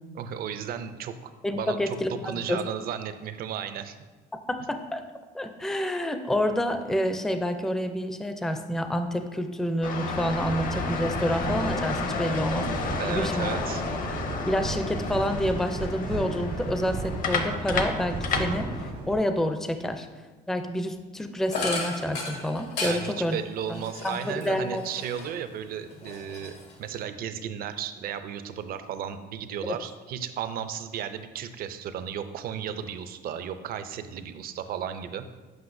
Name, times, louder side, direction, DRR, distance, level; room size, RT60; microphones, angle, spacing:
voice 1, 0.1-4.0 12.9-13.8 22.8-35.2, right 8 dB, 60° right, 10 dB, 0.5 m, -34 dB
voice 2, 1.4-2.6 4.5-5.0 5.3-13.5 14.4-18.7 19.1-20.1 20.5-23.4 23.7-24.8, equal, 5° left, 7 dB, 0.4 m, -28 dB
sound 1, 9.8-18.9, left 4 dB, 55° left, 0.7 m, -31 dB
sound 2, 10.1-19.2, right 3 dB, 85° right, 1.6 m, -35 dB
sound 3, 21.5-25.5 25.9-27.0, left 3 dB, 85° left, 1.4 m, -35 dB
7.9 x 5.4 x 2.6 m, 1.3 s
cardioid pair, 110°, 17 cm